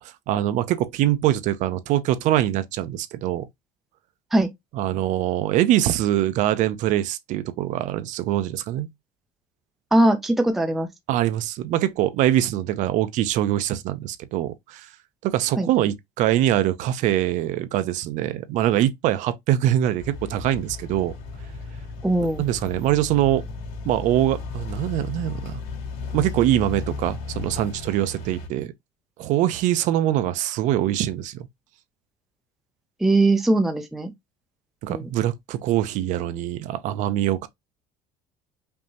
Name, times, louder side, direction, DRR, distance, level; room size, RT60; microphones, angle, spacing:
voice 1, 0.0-3.5 4.7-8.9 11.1-14.9 15.2-21.1 22.4-23.4 23.8-25.6 26.1-28.7 29.2-31.5 34.8-37.5, right 13 dB, 50° right, 0.6 m, -23 dB
voice 2, 9.9-10.9 15.6-15.7 22.0-22.4 33.0-34.1 34.9-35.1, right 2 dB, ahead, 0.4 m, -20 dB
sound 1, 20.0-28.5, left 4 dB, 60° left, 2.5 m, -35 dB
5.3 x 2.8 x 2.8 m
cardioid pair, 180°, 17 cm